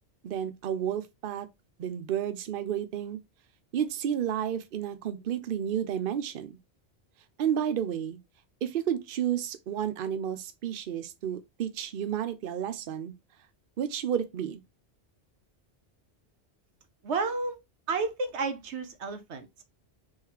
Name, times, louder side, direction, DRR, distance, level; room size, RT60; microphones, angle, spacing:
voice 1, 0.2-1.5 1.8-3.2 3.7-6.6 7.4-8.2 8.6-13.1 13.8-14.6, right 9 dB, 60° right, 0.8 m, -31 dB
voice 2, 17.0-17.6 17.9-19.6, right 4 dB, 90° right, 1.2 m, -31 dB
3.7 x 3.2 x 4.5 m
omnidirectional pair, 1.1 m